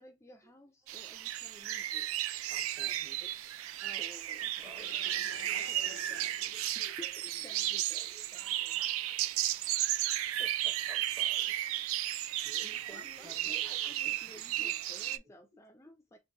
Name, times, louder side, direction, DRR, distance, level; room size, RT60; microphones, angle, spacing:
voice 1, 0.0-2.1 3.8-4.7 5.0-5.1 5.5-6.3 6.7-7.1 7.4-8.1 8.3-8.9 12.6-16.2, left 1 dB, 15° left, 0.3 m, -55 dB
sound 1, 0.9-15.2, right 13 dB, 75° right, 0.3 m, -34 dB
voice 2, 2.5-3.4 4.0-4.1 4.4-5.0 10.4-11.6 12.5-14.3, right 1 dB, 15° right, 0.7 m, -55 dB
sound 2, 4.6-7.9 8.7-8.9 9.5-9.6, left 8 dB, 85° left, 0.4 m, -52 dB
voice 3, 4.7-8.3 8.7-9.2 12.3-14.0 14.3-15.1, left 2 dB, 40° right, 1.5 m, -57 dB
3.9 x 2.5 x 2.7 m
head